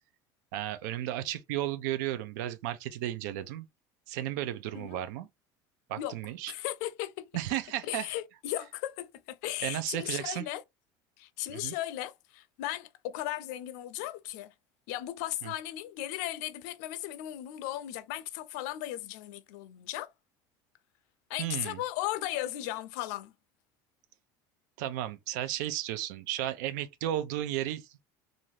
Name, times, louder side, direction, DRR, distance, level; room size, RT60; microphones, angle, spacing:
voice 1, 0.5-3.7 4.1-5.3 5.9-6.5 7.3-8.1 9.6-10.4 11.5-11.8 15.4-15.5 21.4-21.8 24.8-27.9, right 13 dB, 90° right, 0.4 m, -34 dB
voice 2, 6.5-7.3 7.8-10.6 11.2-14.5 14.9-20.1 21.3-23.3, left 14 dB, 80° left, 0.4 m, -36 dB
2.6 x 2.4 x 3.1 m
cardioid pair, 145°, 9 cm